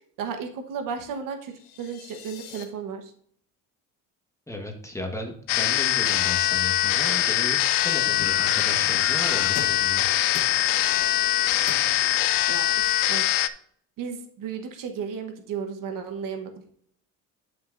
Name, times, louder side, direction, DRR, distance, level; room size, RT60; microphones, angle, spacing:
voice 1, 0.2-3.1 12.5-13.3 14.0-16.5, right 6 dB, 60° right, 6 dB, 1.2 m, -34 dB
sound 1, 1.4-2.6, left 10 dB, 90° left, 1.3 m, -46 dB
voice 2, 4.5-10.4, left 1 dB, 10° left, 3 dB, 1.4 m, -35 dB
sound 2, 5.5-13.5, left 13 dB, 65° left, 0.6 m, -23 dB
sound 3, 8.1-13.0, left 6 dB, 45° left, 1.1 m, -39 dB
11.0 x 5.9 x 2.6 m, 0.63 s
cardioid pair, 110°, 36 cm